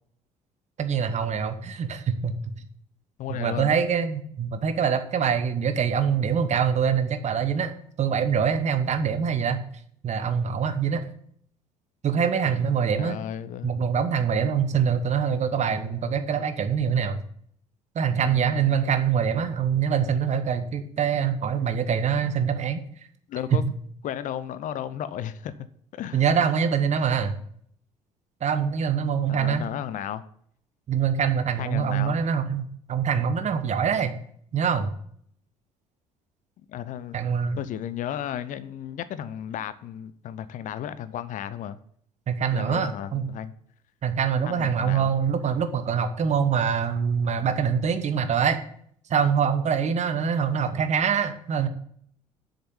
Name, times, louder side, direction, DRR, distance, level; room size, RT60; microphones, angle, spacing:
voice 1, 0.8-2.5 3.3-7.7 8.0-9.6 10.0-11.0 12.0-13.2 13.6-17.2 17.9-22.8 23.5-23.6 26.1-27.4 28.4-29.7 30.9-34.2 34.5-34.9 37.1-37.6 42.3-43.3 44.0-48.6 49.1-51.7, right 7 dB, 40° right, 1.2 m, -24 dB
voice 2, 3.2-3.7 13.0-13.7 18.1-18.7 23.3-23.6 24.0-25.5 25.9-26.4 29.3-30.2 31.6-32.2 36.7-37.1 37.6-41.8 42.5-43.5 44.5-45.1, left 10 dB, 45° left, 0.6 m, -34 dB
7.8 x 6.6 x 7.2 m
figure-of-eight pair, 55°, 18 cm